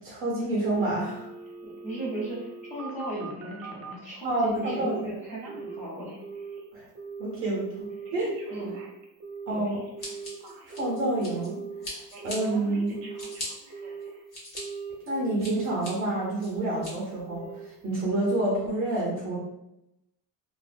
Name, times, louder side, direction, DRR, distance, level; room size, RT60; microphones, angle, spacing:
voice 1, 0.0-1.3 4.2-5.0 6.7-6.8 7.2-8.3 9.5-9.8 10.7-11.6 12.2-13.0 15.1-19.4, right 2 dB, 30° right, -5 dB, 0.7 m, -28 dB
Telephone, 0.7-4.0 4.6-5.0 5.3-6.6 7.0-7.3 7.7-11.1 11.5-11.8 12.1-14.2 14.6-15.4 15.8-16.2 16.5-16.9 17.3-17.7 18.0-18.1, right 5 dB, 65° right, 0.7 m, -41 dB
voice 2, 1.6-6.1 8.0-8.1 8.5-8.8 9.5-9.8, right 1 dB, 15° left, -7 dB, 0.8 m, -36 dB
Scissors, 10.0-11.5 11.8-12.4 12.9-13.5 14.0-14.6 15.1-15.9 16.4-16.9, left 1 dB, 50° left, 1.0 m, -39 dB
2.4 x 2.2 x 2.5 m, 0.87 s
cardioid pair, 170°, 43 cm